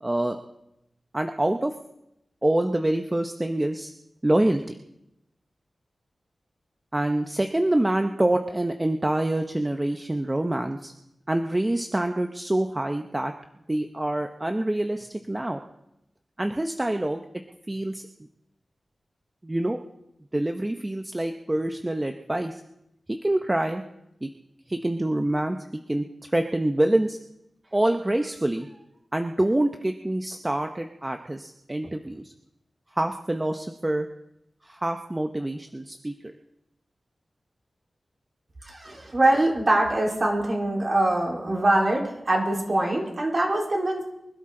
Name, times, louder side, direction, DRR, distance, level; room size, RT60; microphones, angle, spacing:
voice 1, 0.0-0.4 1.1-1.7 2.4-3.9 4.2-4.8 6.9-10.9 11.3-13.3 13.7-15.6 16.4-17.2 17.7-18.0 19.4-19.8 20.3-22.6 23.2-23.8 24.2-24.3 24.7-25.6 25.9-26.0 26.3-27.2 27.7-28.7 29.1-32.3 32.9-34.1 34.6-36.1, right 1 dB, 20° right, 5 dB, 0.8 m, -26 dB
voice 2, 38.6-44.0, right 1 dB, 40° right, -2 dB, 4.0 m, -23 dB
25.0 x 12.5 x 3.8 m, 0.83 s
wide cardioid pair, 105°, 0 cm